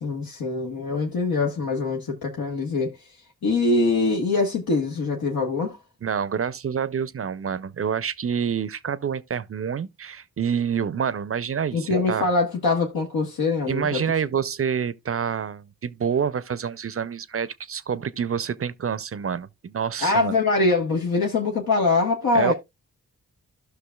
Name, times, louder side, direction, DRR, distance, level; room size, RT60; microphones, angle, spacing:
voice 1, 0.0-2.9 3.4-5.8 11.7-14.0 20.0-22.5, left 3 dB, 75° left, 1.4 m, -23 dB
voice 2, 6.0-12.3 13.7-20.3 22.3-22.5, right 7 dB, 40° right, 0.6 m, -27 dB
13.0 x 5.9 x 2.3 m
cardioid pair, 50°, 36 cm